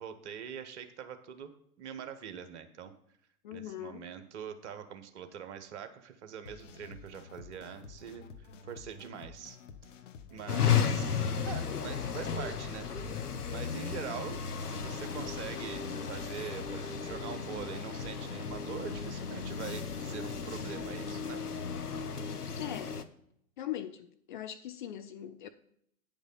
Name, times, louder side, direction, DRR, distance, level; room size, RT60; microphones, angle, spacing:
voice 1, 0.0-2.9 3.5-9.6 10.3-21.4, right 8 dB, 50° right, 1.1 m, -44 dB
voice 2, 3.4-4.1 10.5-11.1 22.6-23.0 23.6-25.5, left 11 dB, 35° left, 0.4 m, -40 dB
sound 1, 6.5-21.2, left 5 dB, 55° left, 0.8 m, -51 dB
sound 2, 10.5-23.0, left 7 dB, 85° left, 0.7 m, -34 dB
9.0 x 5.2 x 5.6 m
figure-of-eight pair, 100°, 44 cm